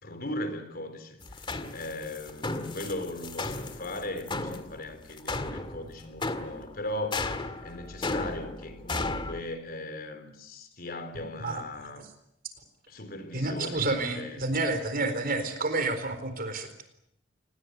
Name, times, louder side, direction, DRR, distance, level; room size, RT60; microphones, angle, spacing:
voice 1, 0.0-12.1 12.9-14.4, left 1 dB, 55° left, 10 dB, 4.0 m, -38 dB
sound 1, 1.2-9.4, left 2 dB, 25° left, 1.9 m, -35 dB
voice 2, 13.3-16.8, right 2 dB, 50° right, 10 dB, 4.3 m, -29 dB
28.0 x 20.0 x 8.2 m, 0.77 s
head